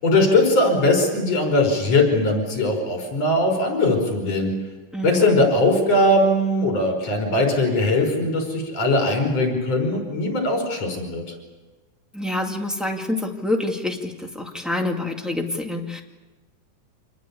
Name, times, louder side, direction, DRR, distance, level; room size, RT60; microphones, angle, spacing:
voice 1, 0.0-4.5 5.0-11.2, left 2 dB, 55° left, 3 dB, 6.4 m, -20 dB
voice 2, 4.9-5.4 12.1-16.0, left 1 dB, ahead, 1 dB, 1.5 m, -27 dB
26.5 x 20.5 x 8.5 m, 1.2 s
omnidirectional pair, 3.5 m